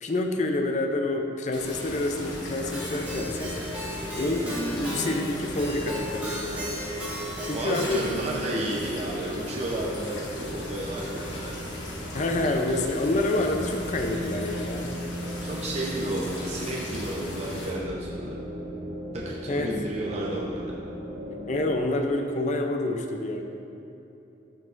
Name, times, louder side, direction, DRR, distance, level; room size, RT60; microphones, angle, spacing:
voice 1, 0.0-3.6 4.2-6.9 7.4-8.0 12.1-15.0 19.5-19.7 21.5-23.4, left 2 dB, 40° left, 4 dB, 0.5 m, -28 dB
sound 1, 1.5-17.7, left 1 dB, 65° left, 1.3 m, -38 dB
sound 2, 2.1-21.7, equal, 60° right, 1.0 m, -38 dB
Keyboard (musical), 2.7-8.4, right 1 dB, 10° right, 1.4 m, -37 dB
voice 2, 7.5-11.6 15.4-18.4 19.1-20.7, right 1 dB, 35° right, -4 dB, 0.7 m, -32 dB
13.5 x 4.6 x 2.5 m, 2.9 s
head